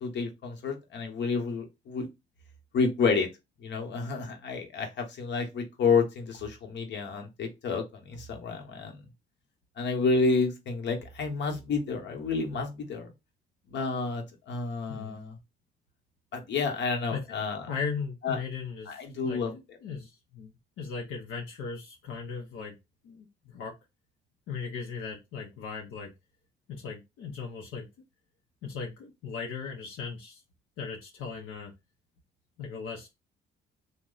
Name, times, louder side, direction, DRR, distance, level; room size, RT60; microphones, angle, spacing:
voice 1, 0.0-2.1 2.7-3.3 3.6-9.0 9.8-13.1 13.7-15.3 16.3-17.7 18.2-18.4 18.9-19.5, left 4 dB, 65° left, 1.0 m, -30 dB
voice 2, 17.7-20.5 20.8-22.7 23.0-23.7 24.5-26.1 26.7-27.9 28.6-30.4 30.8-31.7 32.6-33.1, left 5 dB, 90° left, 0.7 m, -38 dB
3.0 x 2.1 x 3.8 m
cardioid pair, 90°, 20 cm